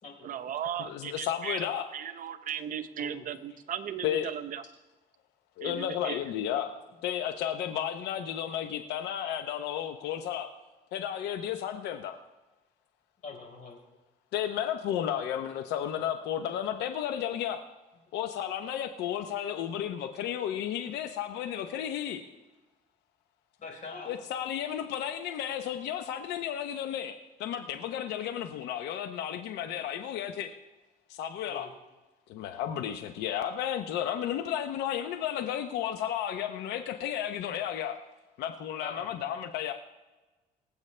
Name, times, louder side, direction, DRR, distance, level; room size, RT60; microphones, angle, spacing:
voice 1, 0.2-1.7 1.9-4.6 5.6-6.2, right 9 dB, 55° right, 10 dB, 0.8 m, -36 dB
voice 2, 0.8-1.9 4.0-4.3 5.6-6.8 7.0-10.5 10.9-12.2 14.3-17.6 18.1-22.2 24.1-27.1 27.4-30.5 31.1-31.7 32.3-38.0 38.4-39.7, left 10 dB, 85° left, 7 dB, 0.8 m, -33 dB
voice 3, 13.2-13.8 23.6-24.1 31.5-31.7 38.8-39.1, left 4 dB, 50° left, 0 dB, 4.3 m, -43 dB
23.5 x 8.1 x 3.3 m, 1.1 s
cardioid pair, 110°, 17 cm